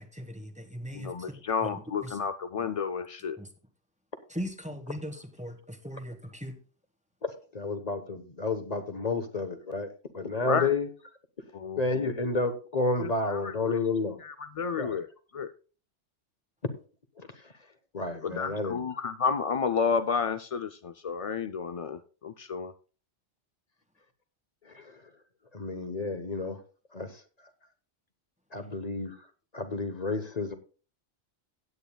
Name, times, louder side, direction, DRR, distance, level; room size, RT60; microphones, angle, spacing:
voice 1, 0.0-1.1 2.0-2.1 3.4-3.5 4.3-6.6, equal, 5° right, 1.3 m, -39 dB
voice 2, 0.9-3.4 10.4-10.7 11.5-12.1 12.9-13.7 14.2-15.1 15.3-15.5 18.2-22.7, left 5 dB, 60° left, 0.3 m, -31 dB
voice 3, 7.2-10.9 11.8-14.2 14.8-15.0 17.2-17.3 17.9-18.8 24.7-24.9 25.5-26.6 26.9-27.1 28.5-29.1 29.5-30.5, left 3 dB, 35° left, 1.2 m, -31 dB
16.5 x 9.2 x 2.3 m
omnidirectional pair, 1.2 m